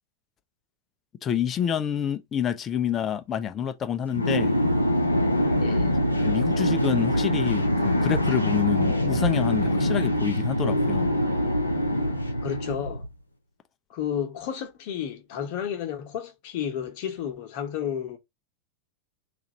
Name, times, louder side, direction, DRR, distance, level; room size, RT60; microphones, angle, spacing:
voice 1, 1.2-4.6 6.2-11.1, left 8 dB, 25° left, 0.6 m, -28 dB
sound 1, 4.1-13.1, equal, 85° left, 0.6 m, -24 dB
voice 2, 5.6-5.9 12.4-13.1 13.9-18.2, left 9 dB, 45° left, 1.0 m, -32 dB
2.8 x 2.6 x 4.1 m
figure-of-eight pair, 90°, 0 cm